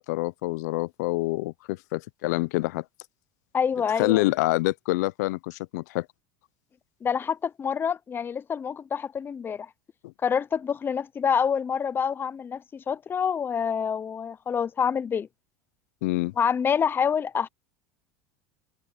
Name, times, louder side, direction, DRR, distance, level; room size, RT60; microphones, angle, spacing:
voice 1, 0.0-2.8 4.0-6.1 10.0-10.1 16.0-16.3, left 20 dB, 80° left, 0.7 m, -26 dB
voice 2, 3.5-4.2 7.0-9.7 10.2-15.3 16.4-17.5, left 7 dB, 25° left, 0.6 m, -27 dB
supercardioid pair, 105°, 9 cm